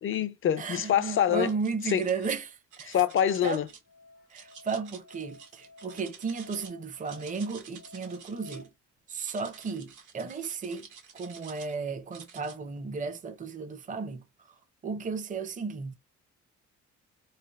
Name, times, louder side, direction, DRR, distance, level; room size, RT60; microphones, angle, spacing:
voice 1, 0.0-1.5 1.8-2.0 2.9-3.7, left 10 dB, 45° left, 0.4 m, -25 dB
voice 2, 0.6-3.0 3.4-3.6 4.3-8.7 9.1-10.9 11.1-14.2 14.8-15.9, right 5 dB, 25° right, 0.6 m, -34 dB
sound 1, 1.2-2.3 2.7-3.8 4.3-6.7 7.0-8.7 9.1-11.7 12.1-12.6, right 6 dB, 80° right, 1.2 m, -50 dB
Musical instrument, 3.3-8.6, left 2 dB, 90° left, 0.9 m, -53 dB
3.3 x 2.4 x 2.2 m
cardioid pair, 90°, 30 cm